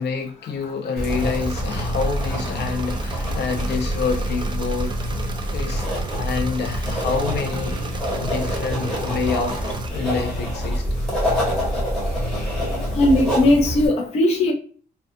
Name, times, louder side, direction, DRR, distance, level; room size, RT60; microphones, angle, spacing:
voice 1, 0.0-5.0 5.5-7.8 8.2-10.8, left 5 dB, 70° left, 0.7 m, -27 dB
sound 1, 1.0-13.9, equal, 5° left, 1.3 m, -26 dB
Engine / Mechanisms, 1.1-9.9, right 4 dB, 25° right, 0.3 m, -35 dB
voice 2, 13.0-14.5, left 1 dB, 35° left, 0.5 m, -18 dB
3.5 x 2.3 x 2.6 m
wide cardioid pair, 170°, 18 cm